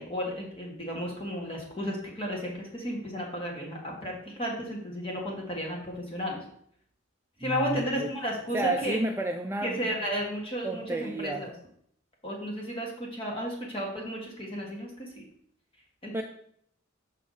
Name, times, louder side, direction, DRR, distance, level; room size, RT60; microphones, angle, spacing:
voice 1, 0.0-6.4 7.4-9.0 9.6-11.5 12.2-15.2 16.0-16.2, equal, 25° left, -2 dB, 1.9 m, -33 dB
voice 2, 7.4-8.1 8.5-9.9 10.6-11.6 16.1-16.2, right 2 dB, 10° right, 3 dB, 0.4 m, -31 dB
6.4 x 5.8 x 4.1 m, 0.67 s
head